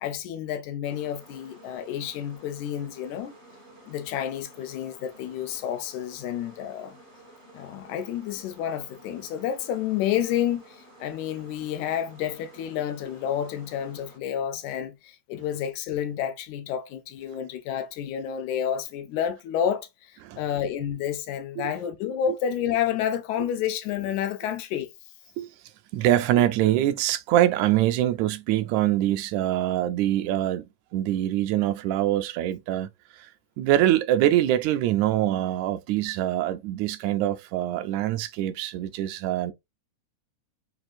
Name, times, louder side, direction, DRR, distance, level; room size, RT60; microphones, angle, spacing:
voice 1, 0.0-3.3 3.9-7.0 7.5-24.9, left 9 dB, 85° left, 2.1 m, -30 dB
sound 1, 0.8-14.2, right 1 dB, 35° right, 0.7 m, -52 dB
voice 2, 25.9-32.9 33.1-33.3 33.6-39.5, right 13 dB, 80° right, 1.8 m, -24 dB
6.1 x 2.5 x 2.5 m
omnidirectional pair, 3.3 m